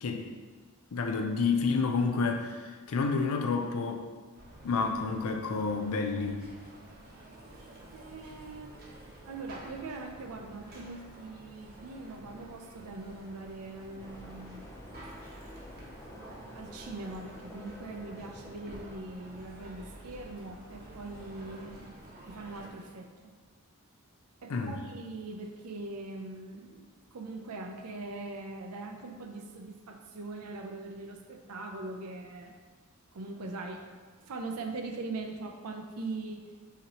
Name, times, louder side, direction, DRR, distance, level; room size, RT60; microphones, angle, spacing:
voice 1, 0.9-4.1 4.6-6.4 24.5-24.8, left 4 dB, 70° left, 4 dB, 0.5 m, -29 dB
sound 1, 4.3-22.7, right 1 dB, 45° right, 0.8 m, -50 dB
voice 2, 7.9-8.7 9.2-14.6 16.5-21.9 22.3-23.3 24.4-26.9 27.1-32.5 33.1-33.9 34.2-36.4, right 3 dB, 80° right, 4 dB, 0.5 m, -41 dB
sound 2, 14.0-19.5, left 1 dB, 15° left, 0.4 m, -50 dB
5.7 x 2.9 x 2.9 m, 1.5 s
head